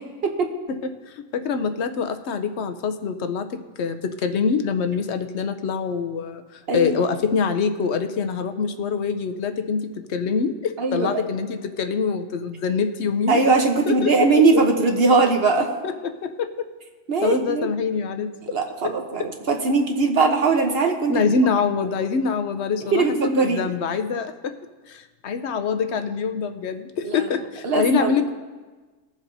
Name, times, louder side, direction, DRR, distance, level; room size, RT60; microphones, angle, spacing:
voice 1, 1.3-3.5 3.8-13.4 13.9-14.3 14.5-14.6 16.2-16.5 17.2-18.3 21.1-24.5 24.9-28.3, left 5 dB, 60° left, 8 dB, 0.9 m, -24 dB
voice 2, 6.7-7.0 10.8-11.2 13.3-15.7 17.1-17.7 18.5-21.2 22.9-23.7 27.0-27.3 27.6-28.1, right 4 dB, 50° right, 3 dB, 1.0 m, -20 dB
21.5 x 7.3 x 2.7 m, 1.3 s
omnidirectional pair, 1.4 m